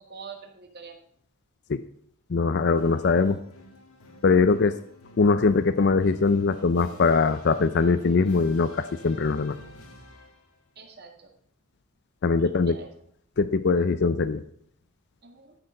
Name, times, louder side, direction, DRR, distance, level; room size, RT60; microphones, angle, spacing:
voice 1, 0.1-1.0 4.4-4.7 10.8-11.3 12.4-12.9 15.2-15.6, right 5 dB, 50° right, 4 dB, 1.9 m, -45 dB
voice 2, 2.3-3.4 4.2-4.7 5.2-9.6 12.2-12.8 13.4-14.4, left 4 dB, 50° left, 12 dB, 0.5 m, -22 dB
sound 1, 2.7-10.6, left 1 dB, 90° left, 1.9 m, -49 dB
12.5 x 6.7 x 5.4 m, 0.63 s
head